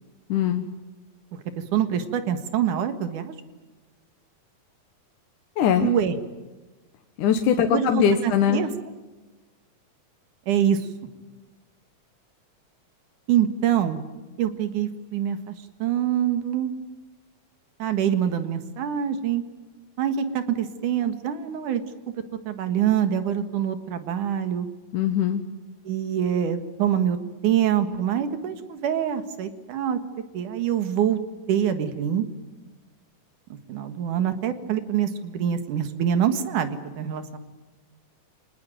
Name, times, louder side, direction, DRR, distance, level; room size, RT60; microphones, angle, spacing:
voice 1, 0.3-0.7 5.6-5.9 7.2-8.6 24.9-25.4, left 8 dB, 80° left, 6 dB, 2.7 m, -21 dB
voice 2, 1.7-3.3 5.8-6.2 7.7-8.7 10.5-10.9 13.3-14.0 14.4-15.5 15.8-16.7 17.8-19.4 20.0-21.8 22.5-24.7 25.8-27.2 27.4-30.0 30.3-31.2 31.5-32.3 33.7-37.4, right 9 dB, 75° right, 10 dB, 3.2 m, -25 dB
27.0 x 19.5 x 9.2 m, 1.2 s
omnidirectional pair, 3.6 m